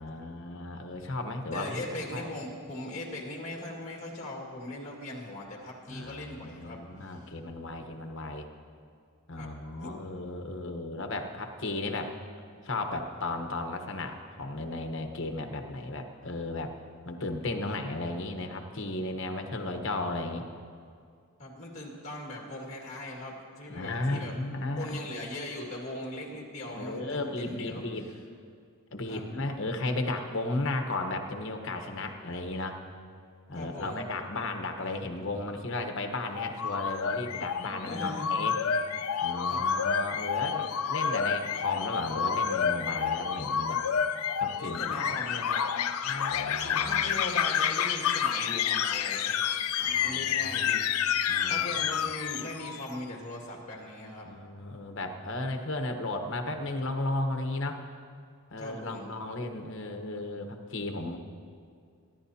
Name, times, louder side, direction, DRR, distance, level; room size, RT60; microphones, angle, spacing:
voice 1, 0.0-1.8 2.1-2.3 5.9-8.5 9.3-12.1 12.6-16.7 17.0-20.5 23.7-25.0 26.7-28.1 28.9-32.8 33.5-38.6 39.2-43.8 44.4-45.1 46.0-47.2 49.8-50.6 51.3-51.7 54.3-57.9 58.5-61.2, left 2 dB, 55° left, 5 dB, 1.1 m, -35 dB
voice 2, 1.5-7.3 9.3-9.5 9.8-9.9 21.4-24.4 24.8-27.9 29.1-29.2 33.5-34.1 37.6-38.3 39.5-39.6 44.6-45.7 46.4-49.4 50.0-51.1 51.5-54.3 58.6-59.1, left 1 dB, 30° left, -1 dB, 1.9 m, -39 dB
sound 1, 36.3-52.9, left 7 dB, 80° left, 0.5 m, -29 dB
24.0 x 11.5 x 2.8 m, 2.3 s
head